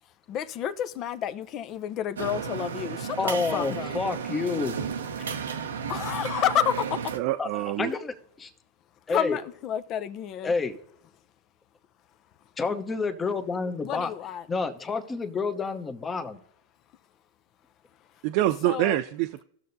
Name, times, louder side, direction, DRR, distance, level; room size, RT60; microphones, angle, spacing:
voice 1, 0.3-4.0 5.9-7.0 9.1-10.5 13.8-14.5 18.6-19.0, left 10 dB, 40° left, 0.6 m, -30 dB
sound 1, 2.2-7.2, right 6 dB, 90° right, 0.8 m, -33 dB
voice 2, 3.2-4.8 7.4-8.5 9.1-9.4 10.4-10.8 12.6-14.1 14.5-16.3, left 4 dB, 20° left, 1.0 m, -29 dB
voice 3, 7.1-7.9 18.2-19.4, right 15 dB, 55° right, 0.4 m, -26 dB
17.5 x 6.6 x 2.7 m
hypercardioid pair, 110°, 0 cm